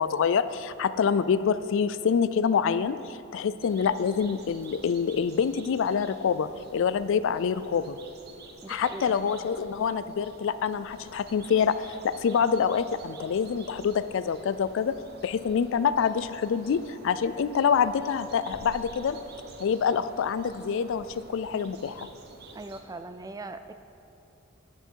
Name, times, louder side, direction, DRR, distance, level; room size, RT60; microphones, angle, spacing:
voice 1, 0.0-8.0 8.7-14.9 15.2-19.2 19.6-22.1, left 6 dB, 65° left, 14 dB, 0.3 m, -26 dB
sound 1, 3.6-22.8, right 2 dB, 50° right, 0.8 m, -49 dB
voice 2, 8.6-9.2 22.5-23.7, right 2 dB, 15° right, 9 dB, 0.3 m, -40 dB
10.0 x 9.7 x 4.6 m, 2.8 s
head